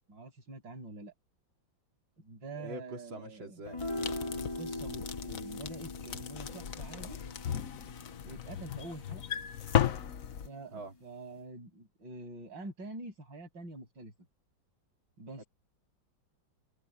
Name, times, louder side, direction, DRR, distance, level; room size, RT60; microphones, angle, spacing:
voice 1, 0.1-1.1 2.2-3.6 4.3-7.2 8.2-9.2 10.4-14.1 15.2-15.5, right 2 dB, 70° right, 8.4 m, -46 dB
voice 2, 2.6-3.8 10.7-10.9 15.4-15.5, right 1 dB, 90° right, 4.2 m, -44 dB
sound 1, 3.7-10.2, left 1 dB, 15° left, 3.0 m, -42 dB
sound 2, 3.8-10.5, left 9 dB, 50° left, 1.2 m, -36 dB
omnidirectional pair, 2.1 m